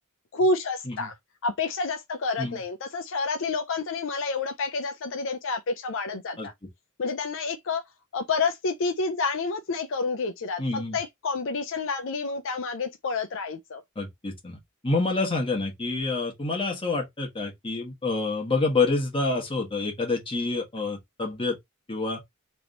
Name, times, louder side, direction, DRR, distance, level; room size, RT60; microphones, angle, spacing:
voice 1, 0.3-1.1 1.4-6.5 7.0-7.8 8.1-13.8, left 3 dB, 60° left, 0.5 m, -29 dB
voice 2, 10.6-11.0 14.0-14.6 14.8-21.6 21.9-22.2, left 3 dB, 25° left, 1.5 m, -27 dB
3.4 x 2.9 x 3.8 m
head